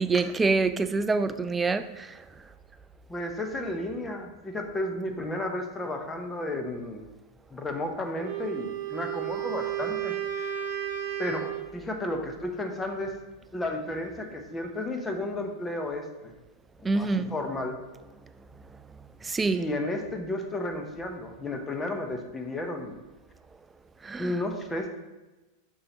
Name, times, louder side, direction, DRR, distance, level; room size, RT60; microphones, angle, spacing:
voice 1, 0.0-2.2 16.8-17.3 19.2-19.6 24.0-24.4, right 3 dB, 15° right, 0.4 m, -26 dB
voice 2, 3.1-7.1 7.5-10.5 11.2-13.1 13.5-16.3 16.9-17.8 19.5-23.0 24.2-24.9, left 1 dB, 15° left, 0.9 m, -33 dB
Wind instrument woodwind instrument, 8.2-11.7, right 11 dB, 60° right, 0.8 m, -33 dB
6.6 x 5.5 x 2.9 m
hypercardioid pair, 100°, 0 cm